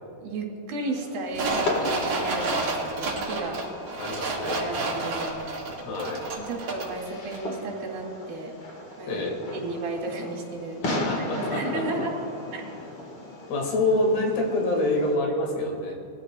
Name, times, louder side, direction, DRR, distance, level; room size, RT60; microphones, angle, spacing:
voice 1, 0.2-3.6 4.4-5.5 6.5-8.5 9.0-9.2 9.5-12.1 12.5-12.6, right 2 dB, 80° right, 0 dB, 4.1 m, -33 dB
Fireworks, 0.9-15.1, left 2 dB, 55° left, 1.2 m, -36 dB
sound 1, 1.3-7.0 7.3-7.4, right 3 dB, 50° right, 2.4 m, -30 dB
voice 2, 4.0-4.6 5.8-6.2 9.1-9.5 10.8-11.9 13.5-15.9, left 2 dB, 80° left, 1 dB, 3.9 m, -26 dB
21.5 x 14.0 x 2.3 m, 2.5 s
omnidirectional pair, 4.6 m